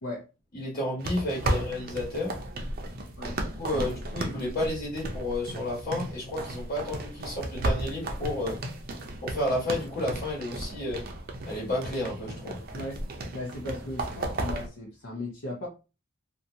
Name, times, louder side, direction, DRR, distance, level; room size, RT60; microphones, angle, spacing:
voice 1, 0.5-2.3 3.2-8.6 9.2-11.0 11.5-12.6, left 1 dB, 45° left, -4 dB, 1.3 m, -31 dB
sound 1, 1.0-14.7, right 1 dB, 45° right, 0.5 m, -34 dB
voice 2, 13.3-15.7, left 2 dB, 75° left, -2 dB, 0.7 m, -37 dB
2.6 x 2.2 x 2.7 m, 0.30 s
head